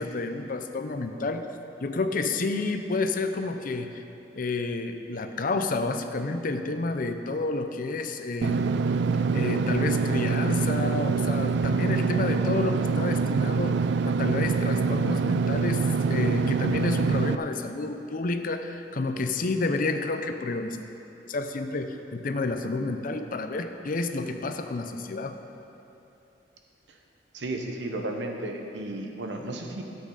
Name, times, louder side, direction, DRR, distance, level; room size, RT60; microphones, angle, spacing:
voice 1, 0.0-1.5 1.8-4.0 4.4-8.7 9.3-15.8 16.1-20.8 21.3-25.4, left 3 dB, 50° left, 7 dB, 0.6 m, -30 dB
Engine / Mechanisms, 8.4-17.4, right 5 dB, 70° right, 0.3 m, -25 dB
voice 2, 27.3-29.8, right 1 dB, 85° right, 3 dB, 1.0 m, -33 dB
13.5 x 8.6 x 3.9 m, 2.9 s
head